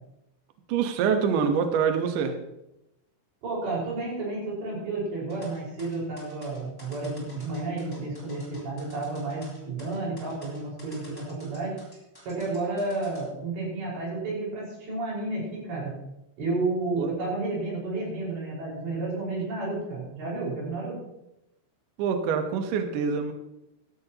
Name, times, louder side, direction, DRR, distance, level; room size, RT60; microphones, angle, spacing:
voice 1, 0.7-2.4 16.9-17.1 22.0-23.3, right 6 dB, 85° right, 6 dB, 1.8 m, -25 dB
voice 2, 3.4-11.7 12.2-15.9 16.4-21.0, right 2 dB, 65° right, -4 dB, 7.5 m, -31 dB
sound 1, 5.3-13.2, left 1 dB, 5° left, 4.4 m, -51 dB
16.5 x 12.0 x 3.0 m, 0.86 s
omnidirectional pair, 5.6 m